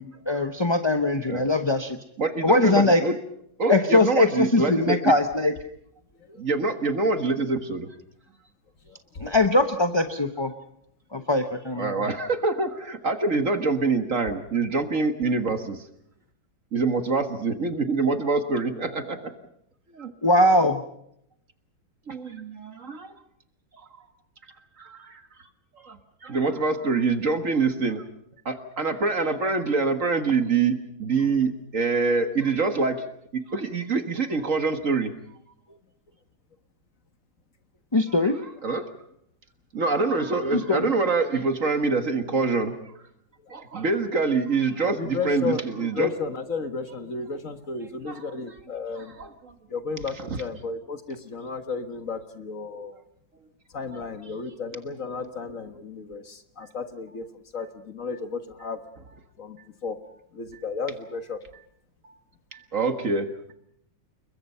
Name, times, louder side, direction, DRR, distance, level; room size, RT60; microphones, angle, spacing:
voice 1, 0.0-2.0 2.4-3.0 3.7-5.5 9.2-10.5 11.1-12.1 20.2-20.8 37.9-38.4 40.5-40.9, left 2 dB, 20° left, 6 dB, 0.7 m, -21 dB
voice 2, 2.2-3.1 3.6-5.1 6.4-7.9 11.8-15.8 16.7-19.3 19.9-20.1 22.1-23.1 23.7-23.9 24.8-25.2 25.7-28.0 28.5-35.1 38.6-38.9 39.7-42.9 43.5-46.1 47.8-48.4 49.0-49.5 50.2-50.4 53.9-54.0 55.1-55.3 60.5-60.6 62.0-62.1 62.5-63.5, right 4 dB, 45° right, 8 dB, 1.9 m, -25 dB
voice 3, 8.9-9.3 45.0-49.1 49.7-53.0 53.7-57.2 57.5-58.8 59.4-59.6 59.8-60.0 60.3-61.4, left 4 dB, 45° left, 8 dB, 1.7 m, -33 dB
29.5 x 22.0 x 5.6 m, 0.72 s
omnidirectional pair, 2.1 m